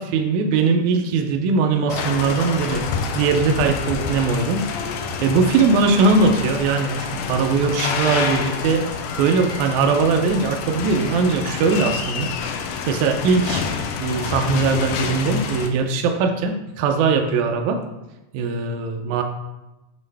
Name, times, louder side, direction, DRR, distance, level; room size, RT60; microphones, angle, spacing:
voice 1, 0.0-2.9 3.2-4.6 5.2-12.3 12.9-13.6 14.0-17.8 18.3-19.2, right 4 dB, 80° right, 4 dB, 1.9 m, -20 dB
sound 1, 1.9-15.7, left 5 dB, 85° left, 2.1 m, -28 dB
7.5 x 4.2 x 3.3 m, 0.98 s
omnidirectional pair, 3.6 m